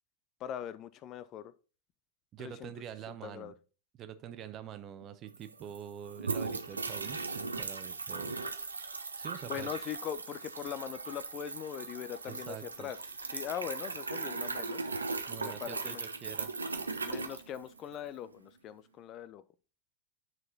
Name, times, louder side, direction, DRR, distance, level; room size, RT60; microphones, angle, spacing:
voice 1, 0.4-1.5 2.4-2.7 3.1-3.5 9.5-13.0 13.2-14.8 15.4-16.0 17.0-19.4, left 10 dB, 35° left, 16 dB, 0.5 m, -41 dB
voice 2, 2.3-3.5 3.9-8.3 9.1-9.7 12.3-12.9 15.3-16.5, right 10 dB, 30° right, 10 dB, 0.9 m, -45 dB
sound 1, 5.0-5.1 5.3-18.1, right 4 dB, 75° right, 0.8 m, -38 dB
9.5 x 4.7 x 4.0 m, 0.35 s
figure-of-eight pair, 90°, 0 cm